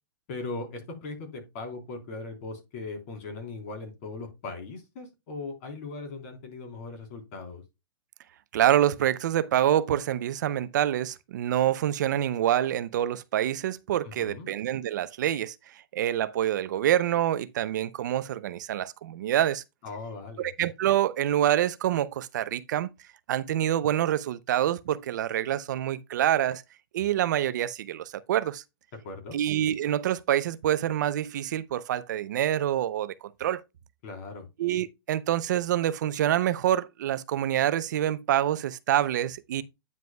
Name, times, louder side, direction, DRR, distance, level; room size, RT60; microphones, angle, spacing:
voice 1, 0.3-7.6 14.0-14.5 19.8-20.5 29.0-29.4 34.0-34.4 39.6-39.7, left 3 dB, 35° left, 3.6 m, -39 dB
voice 2, 8.5-19.6 20.4-22.9 23.3-26.6 26.9-28.6 29.3-33.6 34.6-39.6, right 11 dB, 50° right, 0.5 m, -26 dB
9.3 x 7.4 x 2.3 m
hypercardioid pair, 165°, 12 cm